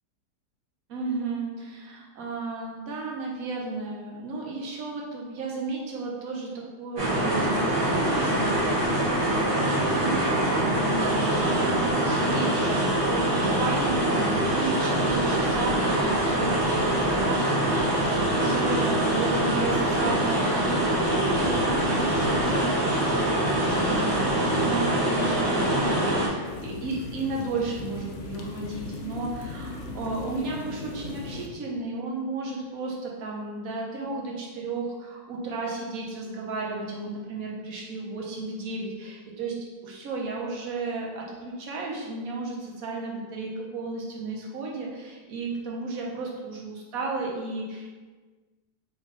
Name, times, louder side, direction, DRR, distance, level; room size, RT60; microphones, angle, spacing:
voice 1, 0.9-39.5 39.8-47.9, right 3 dB, 65° right, -2 dB, 1.2 m, -33 dB
sound 1, 7.0-26.3, right 1 dB, 35° right, 0.8 m, -24 dB
sound 2, 26.4-31.5, left 3 dB, 70° left, 0.7 m, -38 dB
3.3 x 3.1 x 3.6 m, 1.4 s
omnidirectional pair, 1.7 m